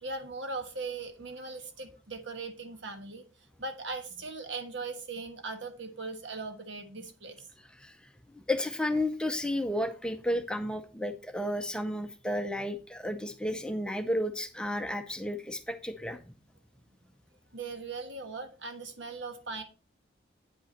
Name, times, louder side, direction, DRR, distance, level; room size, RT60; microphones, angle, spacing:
voice 1, 0.0-3.2 3.6-7.4 17.5-19.6, right 3 dB, 75° right, 1.3 m, -39 dB
voice 2, 8.3-16.2, left 1 dB, 5° left, 0.5 m, -32 dB
8.9 x 5.5 x 4.2 m
head